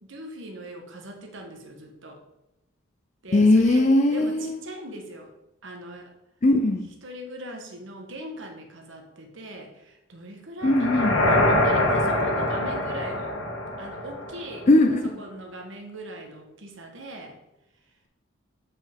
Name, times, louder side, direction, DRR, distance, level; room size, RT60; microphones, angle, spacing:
voice 1, 0.0-2.2 3.2-5.3 5.6-6.1 7.0-13.3 13.8-14.7 15.2-17.4, right 1 dB, 60° right, 2 dB, 1.3 m, -40 dB
voice 2, 3.3-4.6 6.4-6.9 10.6-11.2 14.7-15.0, left 2 dB, 35° left, 4 dB, 0.4 m, -19 dB
sound 1, 10.6-14.7, left 1 dB, 70° left, 1.5 m, -24 dB
8.4 x 5.5 x 3.6 m, 0.92 s
head